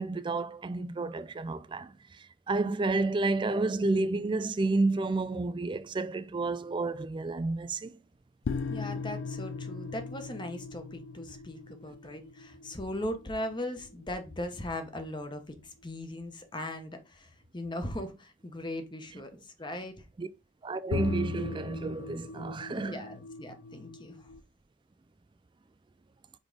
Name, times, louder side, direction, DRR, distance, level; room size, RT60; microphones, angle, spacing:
voice 1, 0.0-8.0 20.2-20.3 20.6-23.0, right 3 dB, 25° right, 0.3 m, -30 dB
sound 1, 8.4-15.2 20.9-24.4, left 4 dB, 75° left, 0.4 m, -39 dB
voice 2, 8.7-20.1 22.7-24.3, left 1 dB, 20° left, 0.9 m, -39 dB
5.2 x 4.7 x 3.9 m
head